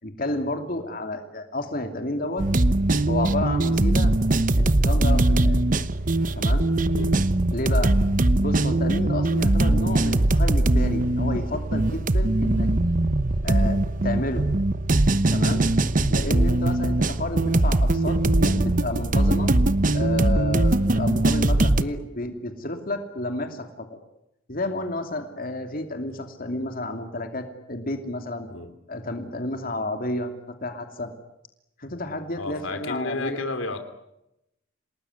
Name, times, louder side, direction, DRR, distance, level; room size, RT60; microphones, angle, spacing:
voice 1, 0.0-2.5 3.1-4.1 4.6-5.6 6.3-6.7 7.5-7.9 8.4-12.7 13.4-14.4 15.3-15.7 16.1-19.5 19.9-24.0 24.5-28.5 28.9-31.1 31.8-33.4, left 1 dB, 45° left, 6 dB, 2.9 m, -31 dB
sound 1, 2.4-21.8, right 2 dB, 40° right, 1.0 m, -21 dB
voice 2, 32.4-33.8, left 2 dB, 75° left, 9 dB, 3.0 m, -32 dB
28.5 x 19.5 x 9.7 m, 0.87 s
head